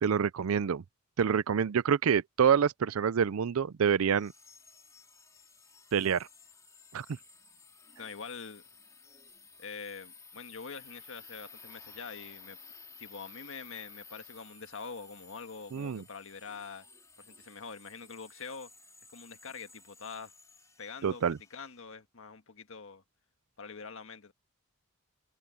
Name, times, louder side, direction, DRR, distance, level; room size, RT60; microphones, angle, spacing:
voice 1, 0.0-0.8 1.2-4.3 5.9-6.3 6.9-7.1 15.7-16.0 21.0-21.4, right 7 dB, 70° right, 0.4 m, -27 dB
sound 1, 4.1-21.8, left 4 dB, 15° left, 3.2 m, -55 dB
voice 2, 8.0-8.6 9.6-12.6 13.0-16.9 17.2-18.7 19.1-20.3 20.8-23.0 23.6-24.3, left 5 dB, 65° left, 1.6 m, -45 dB
head